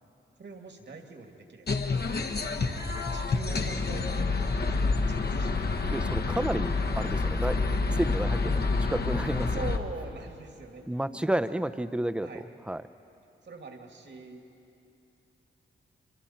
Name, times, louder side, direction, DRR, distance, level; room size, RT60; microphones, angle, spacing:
voice 1, 0.4-1.8 3.1-5.7 9.5-10.8 11.1-11.8 12.2-12.5 13.4-14.4, right 3 dB, 60° right, 3 dB, 2.4 m, -43 dB
sound 1, 1.7-9.8, left 3 dB, 55° left, 1.2 m, -28 dB
voice 2, 5.9-7.6 7.9-8.6 8.9-9.6 10.9-12.8, right 1 dB, 5° right, 13 dB, 0.7 m, -31 dB
25.5 x 24.0 x 4.4 m, 2.7 s
cardioid pair, 50°, 20 cm